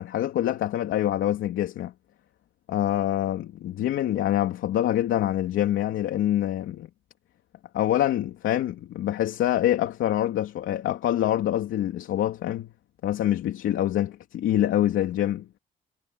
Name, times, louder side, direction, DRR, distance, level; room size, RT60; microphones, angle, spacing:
voice 1, 0.0-1.9 2.7-6.9 7.7-12.7 13.0-15.5, left 12 dB, 80° left, 3.2 m, -25 dB
cardioid pair, 90°, 20 cm